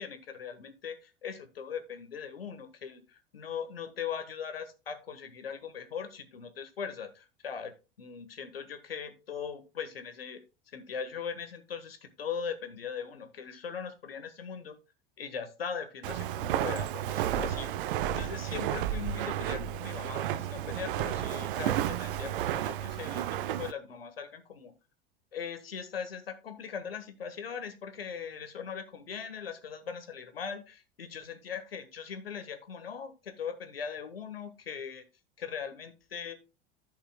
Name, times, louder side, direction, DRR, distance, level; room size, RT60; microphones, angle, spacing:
voice 1, 0.0-3.0 3.3-7.7 8.0-10.4 10.7-14.8 15.2-17.7 18.1-24.7 25.3-35.0 35.4-36.4, left 7 dB, 80° left, 9 dB, 1.5 m, -40 dB
Walk footsteps, 16.0-23.7, right 11 dB, 60° right, 0.7 m, -32 dB
14.0 x 5.6 x 2.2 m, 0.28 s
figure-of-eight pair, 80°, 29 cm